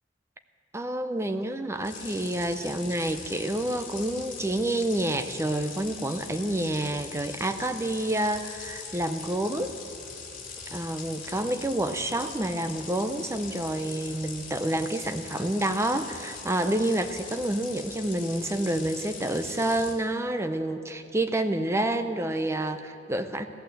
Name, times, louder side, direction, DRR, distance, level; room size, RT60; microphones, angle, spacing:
voice 1, 0.7-9.8 10.7-23.5, right 1 dB, 15° right, 8 dB, 0.7 m, -28 dB
sound 1, 1.8-19.9, left 5 dB, 45° left, 2.6 m, -41 dB
16.0 x 11.5 x 7.7 m, 2.9 s
head